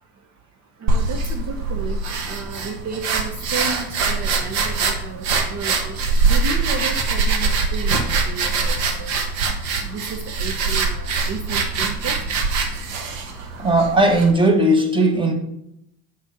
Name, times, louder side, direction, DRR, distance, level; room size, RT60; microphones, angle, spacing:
voice 1, 0.8-5.3 5.5-9.3 9.9-12.2, right 5 dB, 40° right, 0.9 m, -33 dB
sound 1, 0.9-14.3, right 4 dB, 75° right, 1.4 m, -23 dB
voice 2, 13.6-15.3, right 1 dB, 10° right, 1.3 m, -17 dB
7.4 x 4.4 x 5.9 m
supercardioid pair, 105°, 42 cm